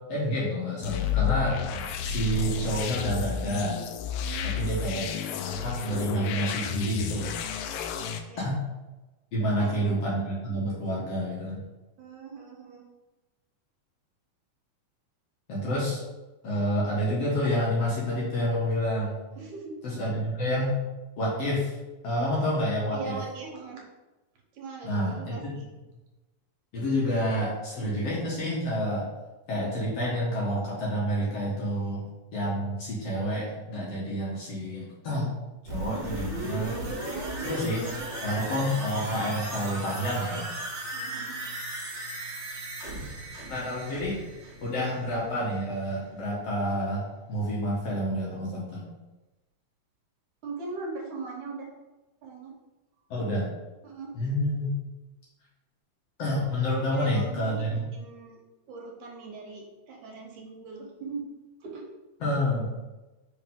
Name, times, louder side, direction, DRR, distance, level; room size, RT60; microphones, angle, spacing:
voice 1, 0.1-1.6 2.0-3.8 4.4-5.1 5.3-7.3 8.4-8.5 9.3-11.6 15.5-16.0 16.4-19.2 20.0-20.8 21.2-21.7 22.0-23.2 24.8-25.6 26.7-29.1 29.5-32.0 32.3-35.3 35.7-36.8 37.4-37.8 38.2-40.5 43.5-44.2 44.6-48.9 53.1-53.5 54.1-54.7 56.2-57.8 62.2-62.7, equal, 55° left, -5 dB, 2.0 m, -28 dB
sound 1, 0.8-8.2, left 7 dB, 85° left, 2.2 m, -31 dB
voice 2, 4.2-4.7 8.3-8.5 9.4-9.8 12.0-12.8 19.4-19.8 22.9-23.8 24.5-25.7 37.1-37.5 40.9-41.4 50.4-51.7 52.2-52.6 53.8-54.1 56.7-57.6 57.9-58.4 58.7-61.2 61.6-61.9, right 4 dB, 70° right, -1 dB, 2.4 m, -40 dB
sound 2, 35.7-45.4 45.7-45.8, right 1 dB, 40° right, 1.9 m, -36 dB
5.6 x 5.3 x 3.6 m, 1.1 s
omnidirectional pair, 3.9 m